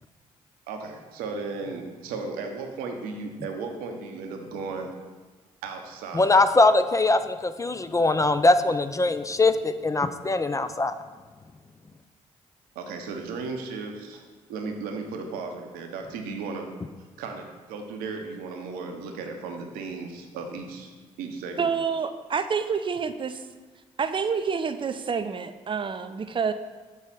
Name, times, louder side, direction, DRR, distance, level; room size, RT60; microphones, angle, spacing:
voice 1, 0.7-4.9 5.6-6.4 12.7-16.7 17.2-20.9 21.2-21.7, right 4 dB, 70° right, 3 dB, 0.8 m, -35 dB
voice 2, 6.1-10.9, left 2 dB, 20° left, 10 dB, 0.4 m, -21 dB
voice 3, 21.6-23.4 24.0-26.5, right 6 dB, 30° right, 10 dB, 0.5 m, -28 dB
6.3 x 4.0 x 5.7 m, 1.4 s
hypercardioid pair, 40°, 16 cm